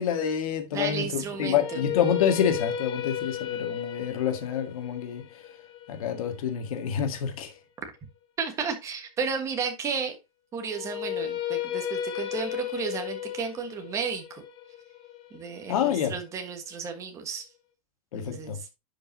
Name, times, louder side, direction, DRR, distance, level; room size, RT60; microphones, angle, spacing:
voice 1, 0.0-5.2 5.9-7.5 15.7-16.1 18.1-18.6, left 8 dB, 75° left, 1.9 m, -27 dB
voice 2, 0.7-1.8 8.4-10.1 10.5-14.4 15.3-17.4 18.1-18.7, right 5 dB, 15° right, 1.4 m, -33 dB
sound 1, 1.3-7.4 10.7-16.7, left 10 dB, 25° left, 1.0 m, -34 dB
10.5 x 5.4 x 2.8 m
supercardioid pair, 170°, 18 cm